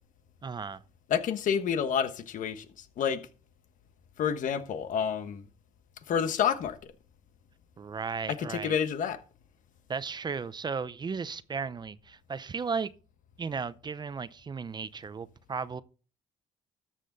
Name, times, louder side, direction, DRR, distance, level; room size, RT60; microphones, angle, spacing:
voice 1, 0.4-0.8 7.8-8.7 9.9-12.9 13.4-15.8, right 5 dB, 30° right, 0.6 m, -35 dB
voice 2, 1.1-3.2 4.2-5.4 6.1-6.9 8.3-9.2, left 7 dB, 65° left, 1.3 m, -29 dB
13.0 x 7.4 x 4.0 m
cardioid pair, 90°, 14 cm